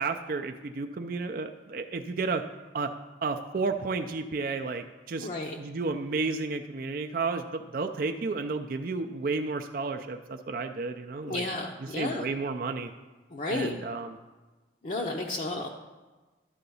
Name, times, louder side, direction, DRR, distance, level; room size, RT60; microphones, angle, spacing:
voice 1, 0.0-2.4 2.7-2.9 3.2-5.3 5.6-11.4 12.0-12.9 13.5-14.2, right 4 dB, 50° right, 5 dB, 0.4 m, -32 dB
voice 2, 5.2-5.6 11.2-12.3 13.3-13.8 14.8-15.7, left 2 dB, 45° left, -1 dB, 0.6 m, -32 dB
11.0 x 3.9 x 6.9 m, 1.2 s
head